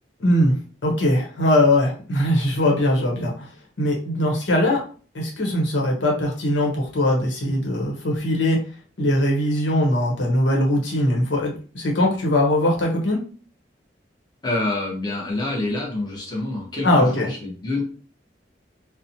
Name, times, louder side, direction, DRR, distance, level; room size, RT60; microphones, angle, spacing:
voice 1, 0.2-0.6 0.8-3.5 3.8-4.8 5.1-8.6 9.0-13.2 16.8-17.3, left 1 dB, 85° left, -1 dB, 0.9 m, -21 dB
voice 2, 14.4-17.8, left 2 dB, 25° left, -2 dB, 0.7 m, -27 dB
2.8 x 2.1 x 2.7 m, 0.40 s
head